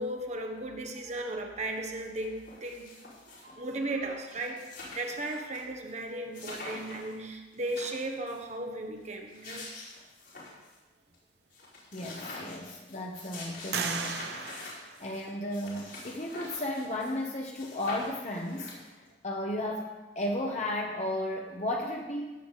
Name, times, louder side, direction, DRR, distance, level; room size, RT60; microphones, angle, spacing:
voice 1, 0.0-2.9 3.3-9.7, right 1 dB, 40° right, 3 dB, 1.2 m, -36 dB
sound 1, 1.6-1.7 2.0-3.6 4.1-4.2 4.3-5.6 5.9-6.0 6.3-7.1 7.5-8.4 9.1-10.8 11.1-11.2 11.5-17.3 17.5-19.1, left 2 dB, 70° left, 5.0 m, -45 dB
sound 2, 11.5-11.6 12.1-12.8 13.7-15.7, right 6 dB, 65° right, 0.9 m, -37 dB
voice 2, 11.9-14.2 15.0-18.8 19.2-22.3, left 1 dB, 40° left, 0 dB, 1.1 m, -34 dB
17.0 x 8.1 x 4.1 m, 1.2 s
head